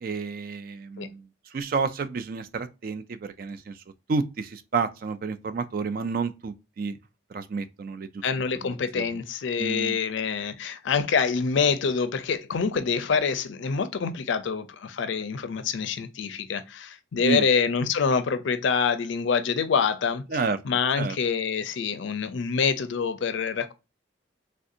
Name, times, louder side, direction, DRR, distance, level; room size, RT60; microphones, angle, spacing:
voice 1, 0.0-1.2 1.5-3.8 4.1-7.0 7.3-8.1 8.6-9.2 9.6-10.0 17.2-17.5 20.3-20.6 21.0-21.2, right 4 dB, 45° right, 0.3 m, -30 dB
voice 2, 8.2-20.2 20.6-23.7, left 6 dB, 70° left, 0.4 m, -26 dB
3.3 x 2.6 x 2.4 m
head